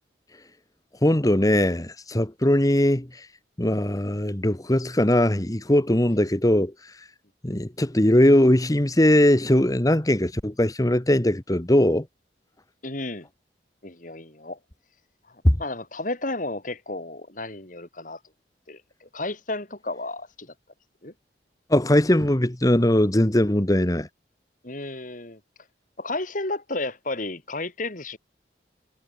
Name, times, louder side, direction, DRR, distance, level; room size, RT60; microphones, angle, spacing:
voice 1, 1.0-3.3 3.6-6.7 7.4-12.1 15.4-15.6 21.7-24.1, left 1 dB, 20° left, 1.3 m, -20 dB
voice 2, 12.8-13.3 13.8-14.6 15.3-18.2 18.7-20.5 21.0-21.1 24.6-25.4 26.0-28.2, left 2 dB, 50° left, 3.6 m, -33 dB
head